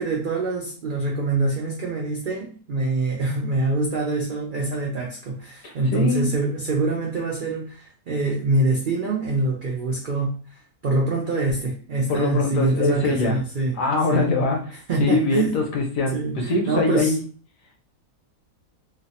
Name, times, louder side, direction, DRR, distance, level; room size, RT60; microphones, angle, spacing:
voice 1, 0.0-10.6 10.8-13.8 14.1-14.3 14.9-15.6 16.1-17.1, right 3 dB, 90° right, -2 dB, 0.4 m, -25 dB
voice 2, 5.6-6.3 12.1-13.4 13.7-17.2, left 3 dB, 70° left, 1 dB, 1.0 m, -23 dB
3.2 x 2.0 x 2.7 m, 0.40 s
omnidirectional pair, 1.6 m